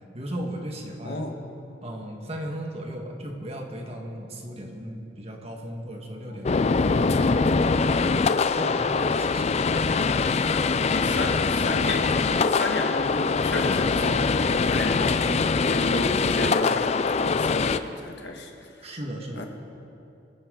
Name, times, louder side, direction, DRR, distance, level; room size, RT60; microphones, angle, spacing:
voice 1, 0.1-1.2 1.8-8.0 8.5-9.5 18.8-19.5, right 1 dB, 35° right, 2 dB, 1.6 m, -36 dB
voice 2, 1.0-1.4 6.3-6.5 10.9-18.5 19.3-19.5, left 2 dB, 65° left, 2 dB, 1.6 m, -32 dB
sound 1, 6.4-17.8, left 4 dB, 35° left, 0.4 m, -23 dB
24.0 x 10.5 x 3.8 m, 2.6 s
head